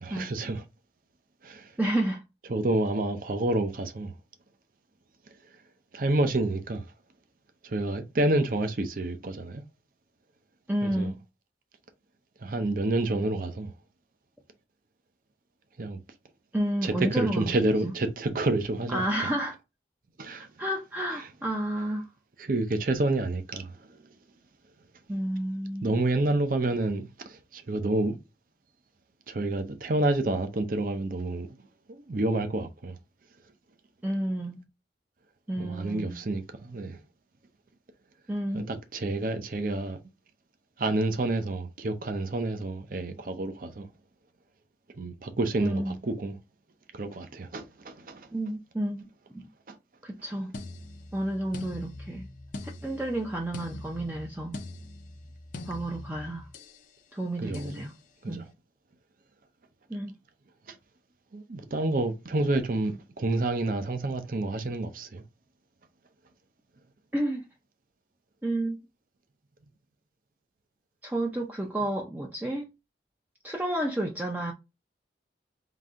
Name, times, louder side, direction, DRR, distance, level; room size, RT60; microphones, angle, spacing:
voice 1, 0.0-0.6 1.4-1.7 2.5-4.1 5.9-6.8 7.6-9.6 10.8-11.1 12.4-13.7 15.8-16.0 16.8-19.0 20.2-20.5 22.4-24.0 25.8-28.2 29.3-31.5 31.9-33.0 35.6-37.0 38.5-40.0 40.8-43.9 45.0-46.4 46.9-48.3 49.7-49.8 57.4-57.7 58.2-58.4 60.7-60.8 61.3-65.2, right 2 dB, 50° right, 0.6 m, -29 dB
voice 2, 1.8-2.2 10.7-11.2 16.5-17.9 18.9-19.6 20.6-22.1 25.1-26.0 34.0-34.6 35.5-36.2 38.3-38.7 45.6-46.0 48.3-49.5 50.0-50.5 51.1-52.3 52.8-54.6 55.7-56.5 57.1-57.9 58.3-58.4 59.9-60.1 67.1-67.5 68.4-68.8 71.0-72.7 73.4-74.5, right 1 dB, 10° right, 0.4 m, -31 dB
sound 1, 50.5-56.8 57.5-57.8, left 2 dB, 50° left, 0.5 m, -42 dB
3.9 x 2.8 x 3.5 m
head